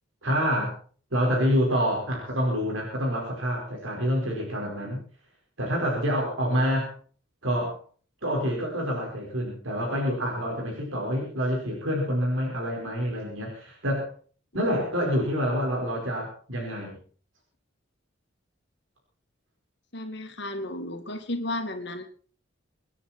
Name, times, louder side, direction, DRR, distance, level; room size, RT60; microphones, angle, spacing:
voice 1, 0.2-0.7 1.1-5.0 5.6-6.9 7.4-7.8 8.2-14.1 14.5-17.0, equal, 80° right, -1 dB, 5.0 m, -27 dB
voice 2, 19.9-22.0, left 1 dB, 60° left, 7 dB, 2.2 m, -33 dB
25.5 x 9.9 x 4.4 m, 0.43 s
head